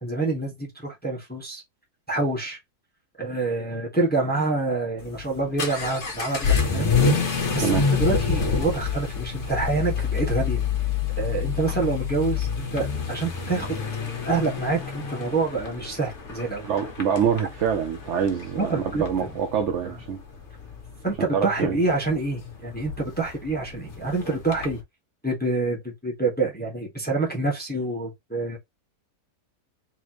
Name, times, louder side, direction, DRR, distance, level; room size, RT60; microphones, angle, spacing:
voice 1, 0.0-1.6 2.1-2.6 3.2-6.9 7.5-10.6 11.2-13.8 14.3-16.7 18.6-19.0 19.8-19.9 21.0-24.8 25.2-28.6, right 3 dB, 5° left, 1.3 m, -27 dB
Vehicle / Accelerating revving vroom, 5.0-24.8, left 5 dB, 50° left, 1.3 m, -28 dB
voice 2, 16.6-20.2 21.2-21.8, right 7 dB, 60° right, 0.9 m, -25 dB
3.9 x 3.7 x 3.0 m
omnidirectional pair, 1.7 m